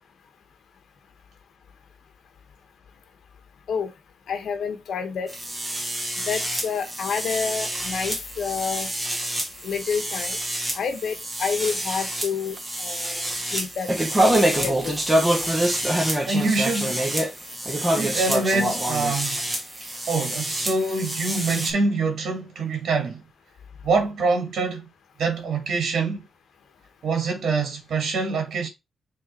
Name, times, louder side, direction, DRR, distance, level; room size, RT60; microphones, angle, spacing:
voice 1, 4.3-5.3 6.3-8.9 9.6-10.4 10.7-13.9 14.6-15.0, left 6 dB, 65° left, 1.2 m, -29 dB
sound 1, 5.3-21.7, right 1 dB, 10° right, 1.3 m, -26 dB
voice 2, 16.3-17.0 17.9-19.4 20.1-23.2 23.8-24.9 25.2-26.2 27.0-28.7, right 3 dB, 65° right, 2.4 m, -25 dB
6.8 x 3.6 x 4.4 m
wide cardioid pair, 175°, 0 cm